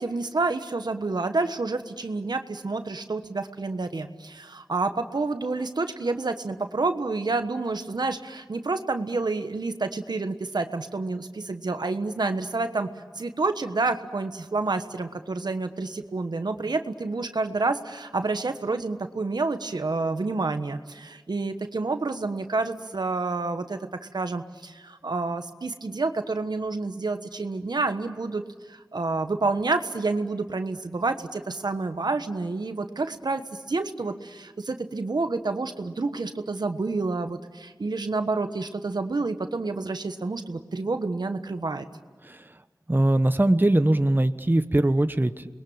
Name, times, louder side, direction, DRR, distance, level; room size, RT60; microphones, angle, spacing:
voice 1, 0.0-12.9 13.2-28.4 28.7-41.9, right 3 dB, 90° right, 8 dB, 1.3 m, -29 dB
voice 2, 42.9-45.5, right 1 dB, 30° right, 10 dB, 1.1 m, -21 dB
28.5 x 22.0 x 8.8 m, 1.4 s
wide cardioid pair, 45°, 7 cm